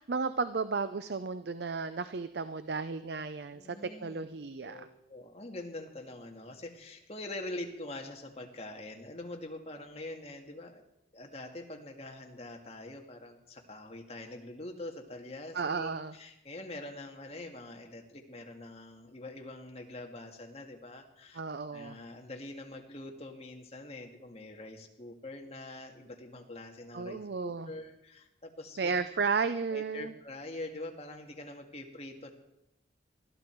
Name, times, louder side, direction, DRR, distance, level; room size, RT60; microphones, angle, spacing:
voice 1, 0.0-4.9 15.5-16.2 21.3-22.0 26.9-27.7 28.8-30.1, right 4 dB, 60° right, 12 dB, 0.6 m, -33 dB
voice 2, 3.5-4.3 4.6-10.8 11.1-21.4 21.7-29.0 29.7-32.3, left 2 dB, 35° left, 3 dB, 2.0 m, -44 dB
20.5 x 13.0 x 4.6 m, 0.85 s
head